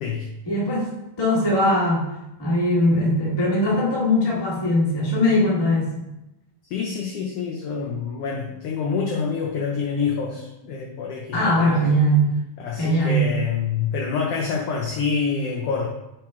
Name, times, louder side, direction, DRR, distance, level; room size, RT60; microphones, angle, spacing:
voice 1, 0.4-2.1 2.4-6.1 11.3-12.3 12.8-13.3, equal, 25° left, -5 dB, 0.5 m, -20 dB
voice 2, 6.7-11.8 12.6-15.9, left 5 dB, 80° left, 0 dB, 1.3 m, -27 dB
6.0 x 5.2 x 3.6 m, 0.92 s
omnidirectional pair, 3.4 m